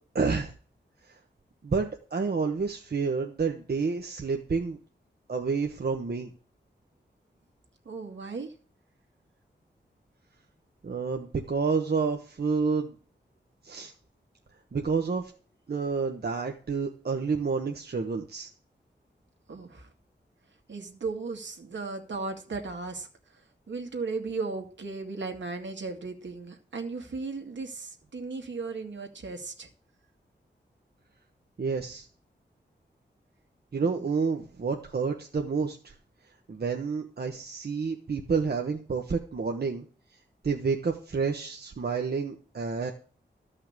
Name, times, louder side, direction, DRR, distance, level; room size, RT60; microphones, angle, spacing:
voice 1, 0.1-0.5 1.6-4.8 5.3-6.3 10.8-12.9 13.6-13.9 14.7-15.3 15.7-18.5 31.6-32.1 33.7-35.9 36.5-39.8 40.4-42.9, right 5 dB, 60° right, 2 dB, 1.2 m, -29 dB
voice 2, 7.9-8.5 19.5-19.9 20.7-23.4 23.7-29.7 33.8-34.1, right 4 dB, 80° right, 3 dB, 2.3 m, -36 dB
13.5 x 5.7 x 8.2 m, 0.41 s
wide cardioid pair, 115°, 19 cm